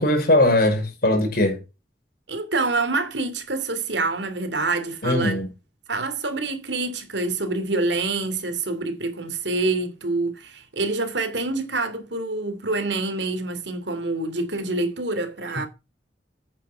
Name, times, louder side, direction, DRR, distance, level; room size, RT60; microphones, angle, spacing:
voice 1, 0.0-1.6 5.0-5.5, left 1 dB, 60° left, 5.7 m, -20 dB
voice 2, 2.3-5.4 5.9-15.7, right 3 dB, 75° right, 2.7 m, -26 dB
9.5 x 9.1 x 4.5 m
head